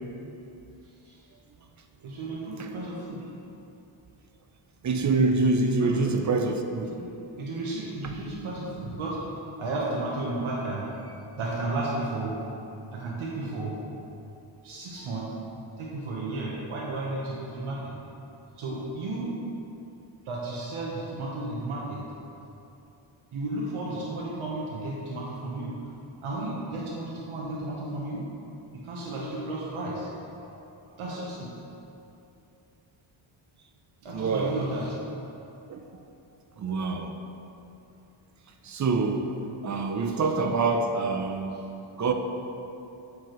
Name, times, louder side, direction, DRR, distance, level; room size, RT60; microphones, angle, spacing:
voice 1, 2.0-3.2 5.8-6.1 6.9-7.1 7.4-12.4 12.9-13.8 14.6-15.3 15.8-17.9 18.6-19.3 20.2-22.0 23.3-25.7 26.2-28.3 28.8-30.1 31.0-31.5 34.0-34.9, right 2 dB, 75° right, -4 dB, 1.0 m, -33 dB
voice 2, 4.8-6.9 34.1-34.6 35.7-36.0 36.6-37.2 38.6-39.3 39.6-41.7 42.0-42.1, right 3 dB, 35° right, 5 dB, 0.5 m, -26 dB
7.1 x 4.6 x 3.0 m, 2.9 s
cardioid pair, 75°, 50 cm